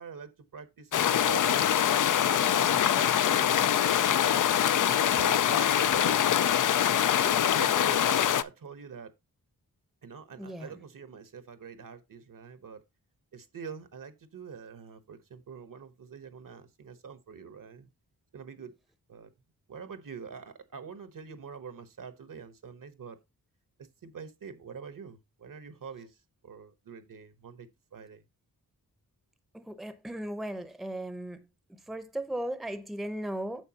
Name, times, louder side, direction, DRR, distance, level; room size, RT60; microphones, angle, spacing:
voice 1, 0.0-4.5 5.2-6.5 7.2-9.1 10.0-12.8 13.3-17.9 18.3-18.7 19.1-19.3 19.7-23.2 24.0-26.2 26.4-28.2, right 6 dB, 60° right, 1.1 m, -45 dB
sound 1, 0.9-8.4, left 10 dB, 55° left, 0.5 m, -24 dB
voice 2, 10.4-10.7 29.5-31.4 31.9-33.6, right 1 dB, ahead, 0.8 m, -36 dB
9.0 x 6.7 x 2.8 m
wide cardioid pair, 125°, 38 cm